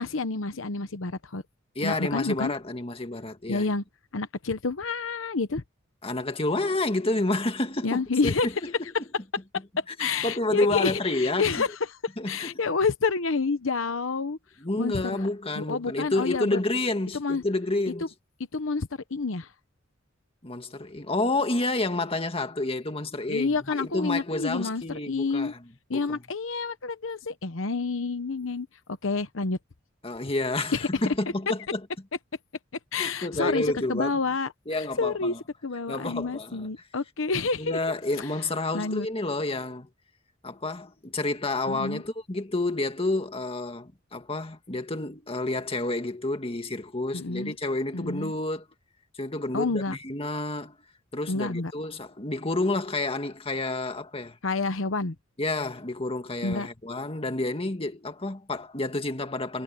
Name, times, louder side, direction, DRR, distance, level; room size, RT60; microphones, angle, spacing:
voice 1, 0.0-1.4 1.8-2.5 3.5-3.8 4.1-5.6 7.8-8.5 9.8-14.4 14.8-15.2 15.6-16.6 17.1-17.4 18.5-19.5 23.3-25.5 25.9-28.7 29.0-29.6 30.7-30.9 32.9-35.3 35.6-37.8 38.2-38.3 38.7-39.1 41.7-42.0 47.1-47.5 47.9-48.3 49.5-50.0 51.3-51.7 54.4-55.1 56.4-56.7, left 4 dB, 80° left, 1.0 m, -29 dB
voice 2, 1.8-3.7 6.0-8.9 9.9-11.6 12.2-12.6 14.6-18.1 20.4-25.6 25.9-26.2 30.0-31.8 33.0-34.1 34.7-35.4 35.9-36.7 37.6-39.9 40.4-48.7 49.2-50.8 51.1-54.4 55.4-59.6, left 2 dB, 30° left, 1.9 m, -29 dB
head